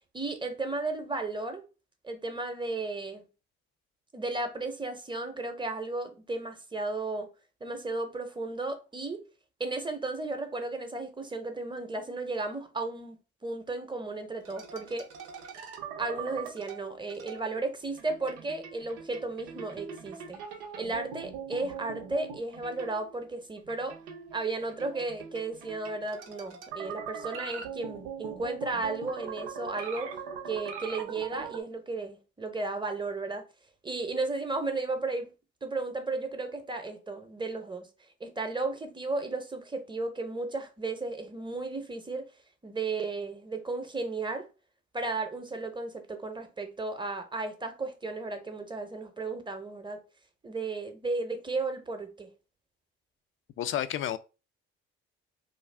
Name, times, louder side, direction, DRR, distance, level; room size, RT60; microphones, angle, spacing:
voice 1, 0.1-1.6 2.0-3.2 4.1-7.3 7.6-9.2 9.6-13.2 13.4-15.1 16.0-20.4 20.8-24.0 24.3-30.1 30.5-33.5 33.8-35.3 35.6-37.9 38.2-42.3 42.6-44.5 44.9-50.0 50.4-52.3, right 3 dB, 15° right, 0.7 m, -34 dB
sound 1, 14.4-17.5 18.0-23.2 23.6-31.6, right 6 dB, 90° right, 0.5 m, -41 dB
voice 2, 53.6-54.2, left 11 dB, 45° left, 0.4 m, -30 dB
2.5 x 2.3 x 3.3 m
hypercardioid pair, 55°, 29 cm